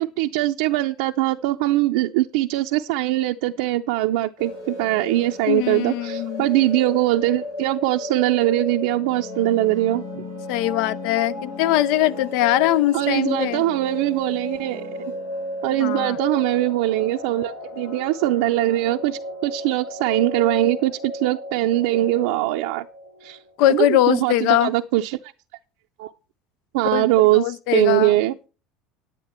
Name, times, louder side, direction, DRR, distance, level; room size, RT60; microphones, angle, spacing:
voice 1, 0.0-10.2 12.9-14.9 15.6-22.8 23.2-23.4 23.7-25.2 26.0-26.1 26.7-28.3, right 16 dB, 75° right, 0.5 m, -22 dB
sound 1, 4.4-23.5, left 1 dB, 85° left, 4.0 m, -34 dB
voice 2, 5.5-6.5 10.5-13.6 15.7-16.2 23.6-24.7 26.9-27.1 27.3-28.1, left 14 dB, 70° left, 0.5 m, -21 dB
9.8 x 9.7 x 4.3 m
supercardioid pair, 90°, 0 cm